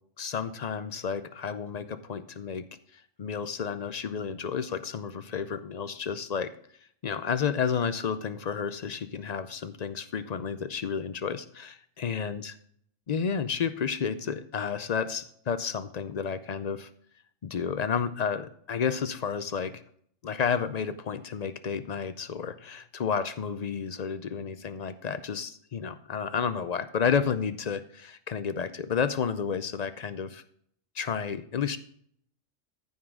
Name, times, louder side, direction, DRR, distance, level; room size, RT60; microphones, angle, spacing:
voice 1, 0.2-2.6 2.9-6.5 7.0-12.5 13.1-16.9 17.4-19.8 20.2-30.4 30.9-31.8, left 6 dB, 55° left, 12 dB, 0.4 m, -31 dB
14.5 x 5.6 x 3.7 m, 0.64 s
omnidirectional pair, 1.3 m